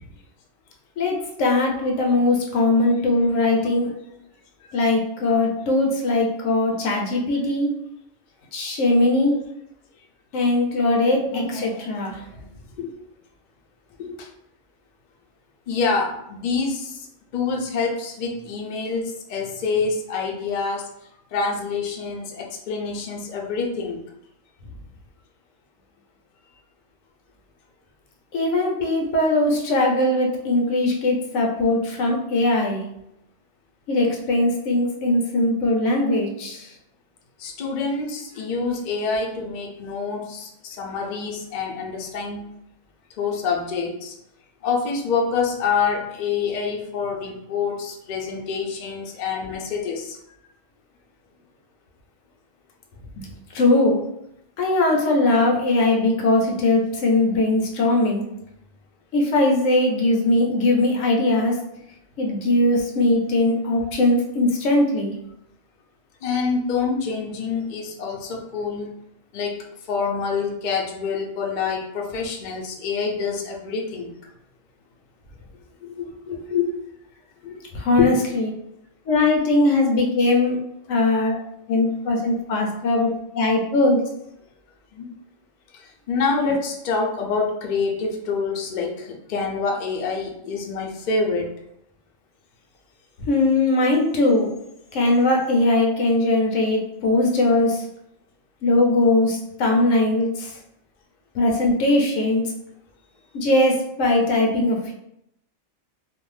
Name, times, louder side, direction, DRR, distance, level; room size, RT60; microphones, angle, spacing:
voice 1, 1.0-3.9 4.7-7.7 8.5-9.4 10.3-12.2 28.3-32.8 33.9-36.7 53.5-54.0 54.6-58.2 59.1-61.6 62.2-65.1 77.7-78.5 79.1-80.6 80.9-81.4 81.7-84.0 93.3-94.5 94.9-97.9 98.6-100.5 101.3-102.4 103.3-104.9, left 2 dB, 80° left, 0 dB, 0.9 m, -20 dB
voice 2, 11.1-11.9 12.2-12.5 12.8-12.9 14.0-14.3 15.7-17.1 17.3-20.9 21.3-24.0 37.4-42.5 43.2-44.1 44.6-50.2 66.2-68.9 69.3-74.1 75.8-76.7 77.4-77.6 78.0-78.1 84.9-85.1 85.7-91.5, left 5 dB, 65° left, 0 dB, 0.4 m, -26 dB
2.5 x 2.0 x 3.1 m, 0.79 s
omnidirectional pair, 1.3 m